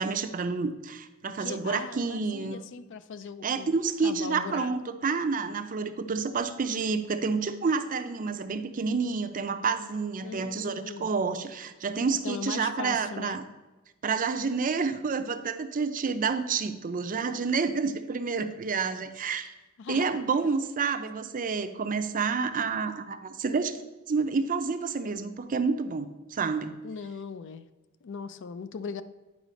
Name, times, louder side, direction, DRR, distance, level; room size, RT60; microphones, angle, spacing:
voice 1, 0.0-2.6 3.4-13.4 14.0-19.5 19.9-23.8 24.1-26.7, right 5 dB, 40° right, 9 dB, 0.5 m, -29 dB
voice 2, 1.4-3.8 4.0-4.7 10.2-11.1 12.2-13.4 19.8-20.0 20.4-20.5 26.8-27.6 28.0-29.0, left 5 dB, 60° left, 13 dB, 0.4 m, -39 dB
9.7 x 4.9 x 5.0 m, 1.1 s
head